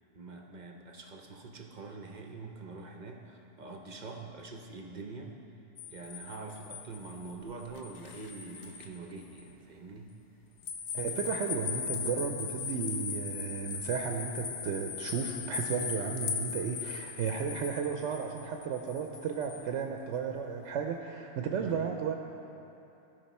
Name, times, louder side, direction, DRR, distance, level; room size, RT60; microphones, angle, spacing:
voice 1, 0.1-5.3 5.9-10.1 21.6-21.9, right 3 dB, 45° right, 3 dB, 0.7 m, -44 dB
sound 1, 5.8-9.0 9.4-9.5 10.6-19.7, left 7 dB, 80° left, 1.0 m, -39 dB
voice 2, 10.9-22.2, right 6 dB, 85° right, 3 dB, 0.9 m, -34 dB
14.5 x 5.3 x 4.2 m, 2.9 s
omnidirectional pair, 1.2 m